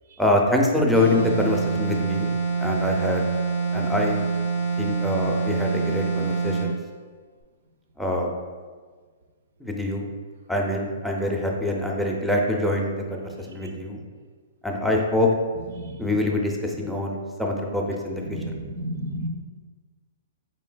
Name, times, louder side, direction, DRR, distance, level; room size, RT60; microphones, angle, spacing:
voice 1, 0.2-2.3 2.6-3.2 3.7-4.2 4.8-6.8 8.0-8.3 9.6-10.1 10.5-14.0 14.6-15.3 16.0-18.4, left 1 dB, ahead, 0 dB, 0.4 m, -25 dB
sound 1, 0.9-6.7, right 5 dB, 85° left, 0.5 m, -26 dB
voice 2, 15.8-16.2 18.3-19.3, right 1 dB, 70° right, 5 dB, 0.4 m, -32 dB
4.3 x 3.2 x 2.2 m, 1.5 s
hypercardioid pair, 125°, 0 cm